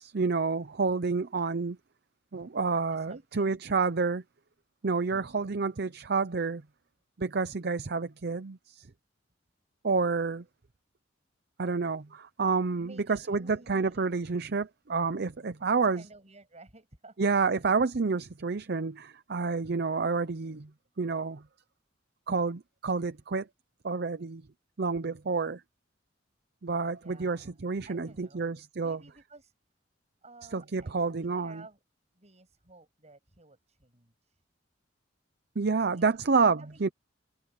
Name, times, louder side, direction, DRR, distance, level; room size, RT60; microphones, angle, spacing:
voice 1, 0.0-1.8 2.3-4.2 4.8-6.6 7.2-8.9 9.8-10.4 11.6-16.0 17.2-20.7 21.0-21.4 22.3-23.5 23.8-24.4 24.8-25.6 26.6-29.0 30.5-31.6 35.6-36.9, right 4 dB, 60° right, 0.7 m, -29 dB
voice 2, 2.9-3.6 12.8-14.2 15.9-17.2 17.5-17.7 27.0-28.5 28.8-29.5 30.2-31.8 32.1-34.4 35.7-36.3 36.6-36.9, right 2 dB, 35° right, 7.6 m, -54 dB
head